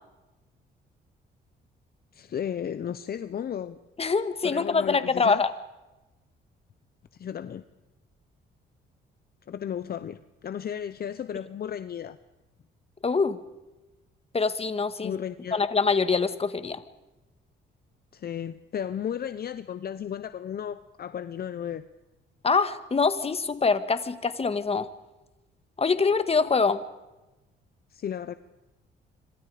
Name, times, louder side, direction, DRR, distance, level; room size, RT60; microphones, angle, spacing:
voice 1, 2.1-3.8 4.4-5.4 7.2-7.6 9.5-12.2 15.0-15.6 18.1-21.8 27.9-28.4, left 9 dB, 50° left, 12 dB, 0.9 m, -34 dB
voice 2, 4.0-5.5 13.0-13.4 14.3-15.2 15.5-16.8 22.4-24.9 25.8-26.8, left 4 dB, 30° left, 11 dB, 1.8 m, -24 dB
26.5 x 25.5 x 5.1 m, 1.1 s
cardioid pair, 90°, 20 cm